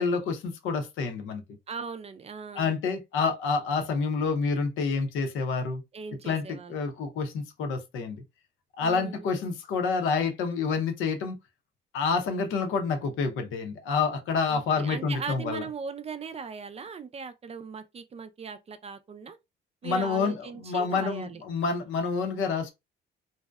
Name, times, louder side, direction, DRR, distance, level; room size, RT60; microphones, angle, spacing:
voice 1, 0.0-1.4 2.5-5.8 6.3-8.2 8.8-11.4 11.9-15.6 19.8-22.7, left 5 dB, 85° left, 0.7 m, -28 dB
voice 2, 1.7-2.7 5.9-6.8 8.8-9.3 14.5-19.4 19.8-21.4, right 6 dB, 30° right, 0.4 m, -39 dB
2.6 x 2.1 x 2.2 m
cardioid pair, 90°, 20 cm